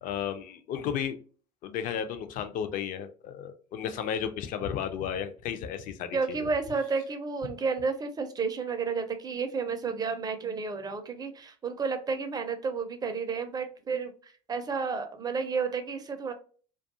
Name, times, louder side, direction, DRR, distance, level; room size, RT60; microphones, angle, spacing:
voice 1, 0.0-1.2 1.6-6.5, left 8 dB, 40° left, 9 dB, 0.4 m, -33 dB
voice 2, 6.1-16.3, right 5 dB, 20° right, 7 dB, 0.4 m, -31 dB
2.3 x 2.3 x 2.7 m, 0.41 s
figure-of-eight pair, 65°, 21 cm